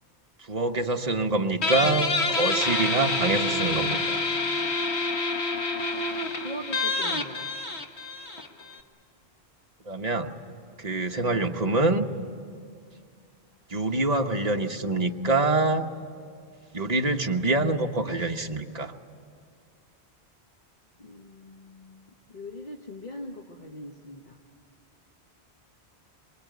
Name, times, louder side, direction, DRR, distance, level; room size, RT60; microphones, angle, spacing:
voice 1, 0.5-4.2 9.9-10.3 10.8-12.1 13.7-15.9 16.7-18.9, right 2 dB, 40° right, 4 dB, 1.1 m, -25 dB
Guitar, 1.6-8.8, left 3 dB, 85° left, 1.7 m, -27 dB
voice 2, 6.4-7.5 21.0-24.4, left 1 dB, 45° left, 2 dB, 1.2 m, -41 dB
24.5 x 24.0 x 9.3 m, 2.2 s
omnidirectional pair, 1.1 m